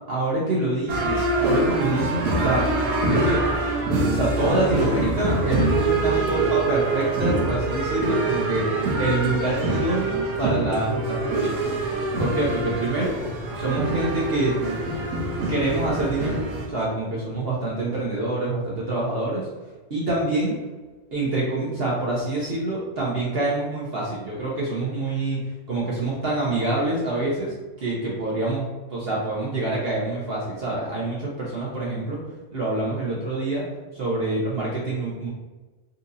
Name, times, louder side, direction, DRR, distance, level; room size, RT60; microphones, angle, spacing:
voice 1, 0.1-2.6 3.1-3.4 4.1-11.7 12.2-13.2 13.5-14.6 15.5-19.5 19.9-20.6 21.1-32.2 32.5-33.6 33.9-35.3, right 2 dB, 50° right, -5 dB, 0.8 m, -26 dB
sound 1, 0.9-16.7, right 2 dB, 90° right, 1.2 m, -25 dB
4.0 x 2.8 x 2.5 m, 1.2 s
omnidirectional pair, 1.5 m